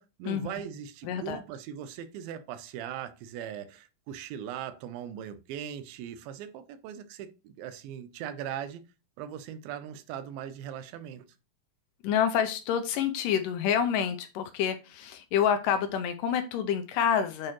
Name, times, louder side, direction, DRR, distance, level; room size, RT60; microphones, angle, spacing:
voice 1, 0.0-8.8 9.2-11.3, right 9 dB, 85° right, 2.5 m, -39 dB
voice 2, 1.0-1.4 12.0-17.5, left 8 dB, 80° left, 2.1 m, -28 dB
8.4 x 4.3 x 3.0 m
omnidirectional pair, 4.1 m